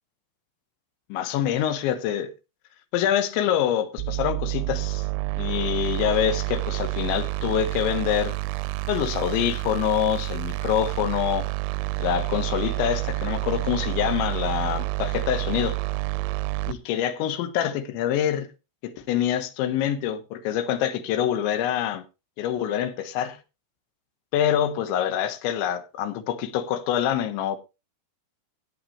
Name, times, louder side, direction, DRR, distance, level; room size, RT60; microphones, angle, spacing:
voice 1, 1.1-2.3 2.9-5.1 5.4-8.4 8.9-11.5 12.0-15.8 16.7-18.5 18.8-22.0 22.4-23.4 24.3-27.6, left 10 dB, 90° left, 3.5 m, -25 dB
sound 1, 4.0-16.7, right 22 dB, 90° right, 3.0 m, -29 dB
16.5 x 9.0 x 3.1 m
omnidirectional pair, 5.1 m